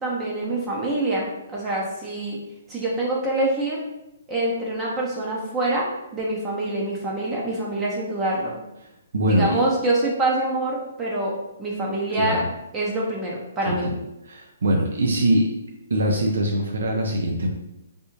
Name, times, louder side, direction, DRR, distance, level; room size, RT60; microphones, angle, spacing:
voice 1, 0.0-2.4 2.7-3.8 4.3-5.9 6.1-8.5 9.3-11.3 11.6-12.4 12.7-13.9, right 2 dB, 15° right, -4 dB, 0.5 m, -25 dB
voice 2, 9.1-9.6 12.2-12.4 13.6-13.9 14.2-15.5 15.9-17.5, right 1 dB, 80° right, 0 dB, 0.6 m, -22 dB
3.4 x 2.6 x 2.9 m, 0.90 s
hypercardioid pair, 160°, 0 cm